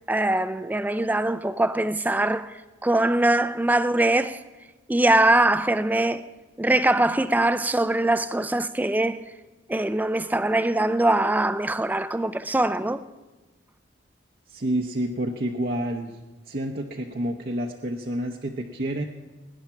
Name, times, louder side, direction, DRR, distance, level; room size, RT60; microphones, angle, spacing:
voice 1, 0.1-2.5 2.8-4.4 4.9-6.2 6.6-9.2 9.7-13.0, right 1 dB, 10° right, 0.3 m, -22 dB
voice 2, 14.5-16.2 16.5-19.0, right 1 dB, 50° right, 0.8 m, -29 dB
18.0 x 10.0 x 5.8 m
head